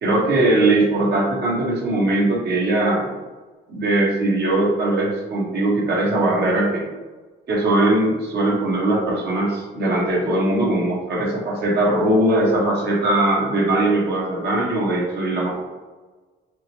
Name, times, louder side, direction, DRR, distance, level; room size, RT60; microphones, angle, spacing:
voice 1, 0.0-3.2 3.7-6.9 7.5-15.7, right 1 dB, 60° right, -3 dB, 1.2 m, -20 dB
5.0 x 2.0 x 3.0 m, 1.3 s
cardioid pair, 90°, 20 cm